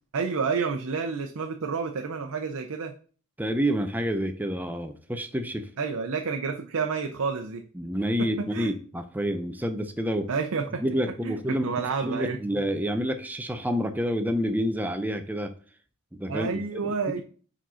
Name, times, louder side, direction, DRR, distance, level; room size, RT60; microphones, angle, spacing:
voice 1, 0.1-2.9 5.8-7.6 8.4-8.7 10.3-10.8 11.2-12.4 16.3-17.2, right 5 dB, 90° right, 4 dB, 0.6 m, -29 dB
voice 2, 3.4-5.7 7.7-10.3 10.8-15.5 16.1-17.2, equal, 10° right, 7 dB, 0.5 m, -29 dB
5.0 x 3.9 x 5.6 m, 0.42 s
head